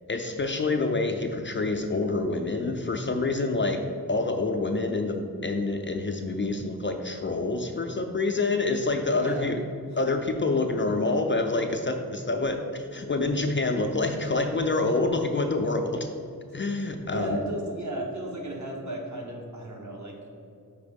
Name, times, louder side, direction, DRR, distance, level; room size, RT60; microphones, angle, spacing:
voice 1, 0.1-9.6 10.0-16.1 16.5-17.4, left 3 dB, 35° left, 4 dB, 0.4 m, -27 dB
voice 2, 9.1-9.6 17.1-20.2, right 1 dB, 55° right, -1 dB, 1.1 m, -34 dB
5.2 x 3.9 x 5.1 m, 2.5 s
wide cardioid pair, 110°, 35 cm